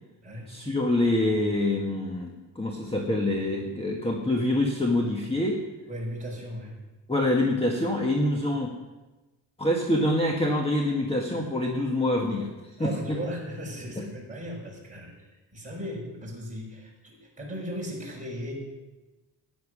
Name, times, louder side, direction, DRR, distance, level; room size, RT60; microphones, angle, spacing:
voice 1, 0.5-5.6 7.1-8.7 9.6-13.2 14.0-14.1, left 1 dB, 15° left, 0 dB, 1.4 m, -26 dB
voice 2, 5.9-6.7 12.8-18.5, equal, 15° right, -3 dB, 5.3 m, -37 dB
15.5 x 10.5 x 6.2 m, 1.2 s
wide cardioid pair, 135°, 42 cm